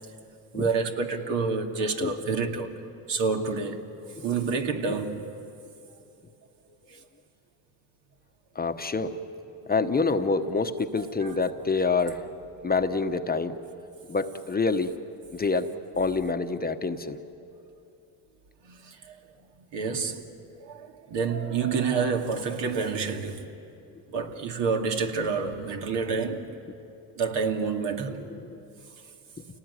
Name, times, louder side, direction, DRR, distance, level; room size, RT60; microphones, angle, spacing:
voice 1, 0.5-2.7 3.1-3.8 4.2-5.2 11.0-11.5 18.6-19.2 19.7-20.2 20.6-23.5 24.1-26.5 27.2-28.3, right 5 dB, 65° right, 2.4 m, -28 dB
voice 2, 8.5-9.2 9.7-12.2 12.6-13.6 14.1-14.9 15.3-17.2 28.4-28.5, left 4 dB, 20° left, 1.0 m, -26 dB
28.5 x 18.5 x 9.7 m
supercardioid pair, 90°, 45 cm